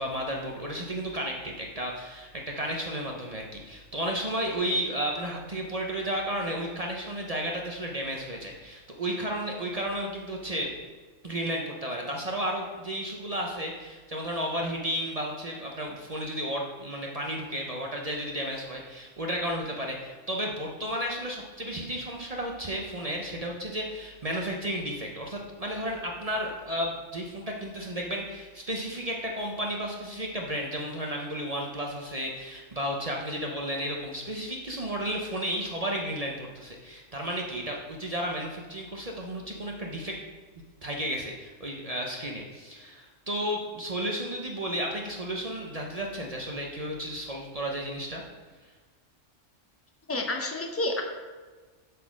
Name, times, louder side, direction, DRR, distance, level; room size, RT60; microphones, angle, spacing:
voice 1, 0.0-10.7 11.2-40.2 40.8-48.2, equal, 40° right, 0 dB, 0.7 m, -33 dB
voice 2, 50.1-51.0, left 2 dB, 15° left, 3 dB, 0.5 m, -29 dB
6.9 x 4.1 x 6.1 m, 1.4 s
omnidirectional pair, 1.3 m